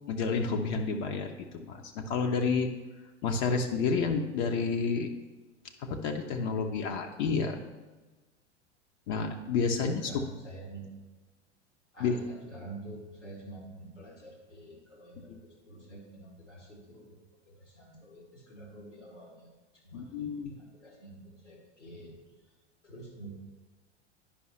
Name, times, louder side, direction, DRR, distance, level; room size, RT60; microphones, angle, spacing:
voice 1, 0.1-2.7 3.2-5.1 5.8-7.6 9.1-10.2 12.0-12.1 15.2-15.4 19.9-20.5, left 5 dB, 40° left, 4 dB, 0.7 m, -30 dB
voice 2, 9.8-10.9 11.9-17.2 17.4-19.5 19.8-22.2 22.8-23.3, right 2 dB, 85° left, -2 dB, 2.2 m, -47 dB
9.9 x 5.3 x 3.1 m, 1.2 s
figure-of-eight pair, 85°, 36 cm